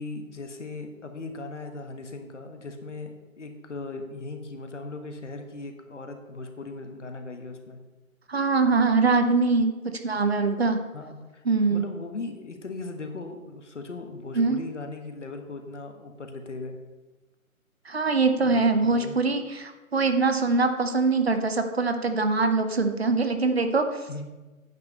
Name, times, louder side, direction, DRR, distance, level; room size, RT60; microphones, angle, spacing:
voice 1, 0.0-7.8 10.1-10.2 10.9-16.8 18.4-19.2 24.1-24.3, left 3 dB, 55° left, 5 dB, 1.5 m, -38 dB
voice 2, 8.3-9.7 10.0-10.8 11.5-11.8 14.3-14.6 17.9-24.1, right 3 dB, 45° right, 7 dB, 0.9 m, -23 dB
9.4 x 5.0 x 6.7 m, 1.1 s
figure-of-eight pair, 165°, 42 cm